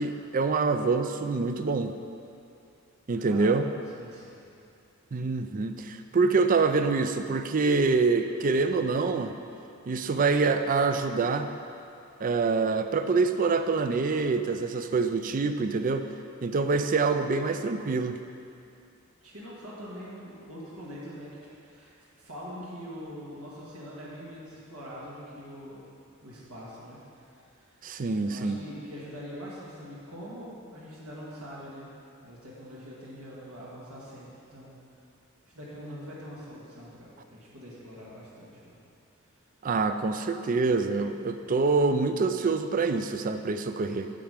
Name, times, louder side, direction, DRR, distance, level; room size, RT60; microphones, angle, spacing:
voice 1, 0.0-1.9 3.1-3.7 5.1-9.3 9.9-11.5 12.2-16.1 16.4-18.2 27.8-28.6 39.6-44.1, right 4 dB, 40° right, 9 dB, 0.4 m, -26 dB
voice 2, 3.1-3.5 3.9-4.4 19.2-21.3 21.6-21.9 22.2-25.9 26.2-27.7 28.2-31.9 32.2-34.7 35.5-38.8, equal, 85° right, -6 dB, 1.9 m, -43 dB
8.4 x 7.1 x 5.1 m, 2.6 s
head